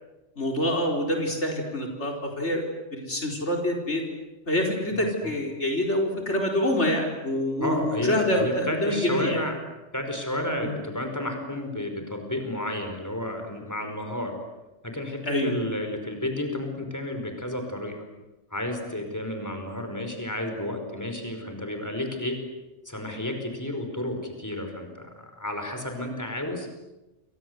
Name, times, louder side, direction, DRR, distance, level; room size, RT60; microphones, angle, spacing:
voice 1, 0.4-2.6 2.9-4.0 4.5-9.4 10.6-10.7 15.2-15.5, left 1 dB, 65° left, 1 dB, 4.9 m, -26 dB
voice 2, 4.9-5.4 7.6-9.6 9.9-14.4 14.8-18.0 18.5-22.4 22.8-26.7, left 1 dB, 15° left, 5 dB, 5.0 m, -31 dB
29.5 x 24.5 x 8.1 m, 1.0 s
omnidirectional pair, 1.2 m